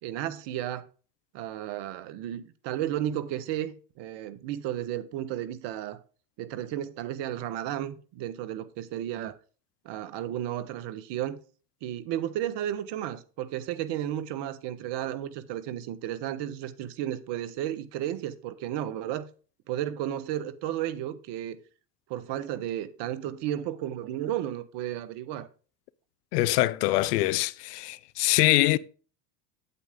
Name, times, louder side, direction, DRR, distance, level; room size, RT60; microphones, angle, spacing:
voice 1, 0.0-0.9 1.3-6.0 6.4-9.3 9.8-11.4 11.8-19.3 19.7-21.6 22.1-25.5, right 12 dB, 60° right, 1.3 m, -33 dB
voice 2, 26.3-28.8, left 17 dB, 80° left, 0.7 m, -24 dB
8.8 x 8.4 x 3.7 m
hypercardioid pair, 85°, 46 cm